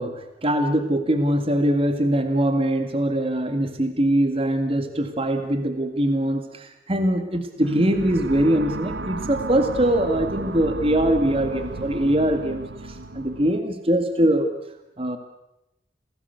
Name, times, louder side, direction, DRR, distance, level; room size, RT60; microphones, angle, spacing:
voice 1, 0.0-14.5 15.0-15.2, right 1 dB, 35° right, 7 dB, 1.9 m, -22 dB
sound 1, 7.6-13.6, right 2 dB, 85° right, 1.0 m, -33 dB
27.5 x 18.0 x 8.1 m, 0.89 s
head